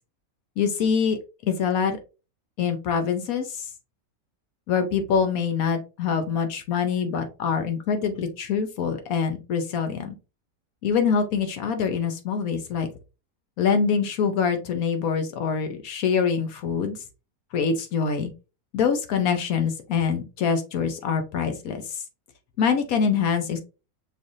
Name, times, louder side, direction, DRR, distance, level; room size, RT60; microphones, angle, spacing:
voice 1, 0.6-2.0 2.6-3.7 4.7-10.1 10.8-12.9 13.6-17.0 17.5-18.3 18.7-22.0 22.6-23.6, left 6 dB, 75° left, 6 dB, 1.2 m, -25 dB
6.2 x 3.4 x 2.5 m, 0.30 s
omnidirectional pair, 1.5 m